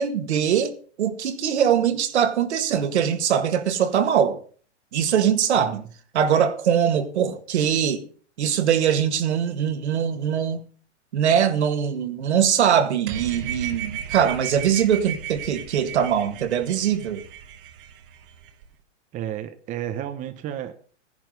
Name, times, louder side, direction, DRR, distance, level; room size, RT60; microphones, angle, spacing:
voice 1, 0.0-4.4 4.9-5.8 6.1-8.0 8.4-10.6 11.1-17.2, right 8 dB, 65° right, 1.9 m, -22 dB
sound 1, 13.1-18.7, right 8 dB, 45° right, 1.3 m, -35 dB
voice 2, 19.1-20.7, right 11 dB, 20° right, 0.8 m, -32 dB
15.5 x 10.5 x 3.9 m
hypercardioid pair, 130°, 36 cm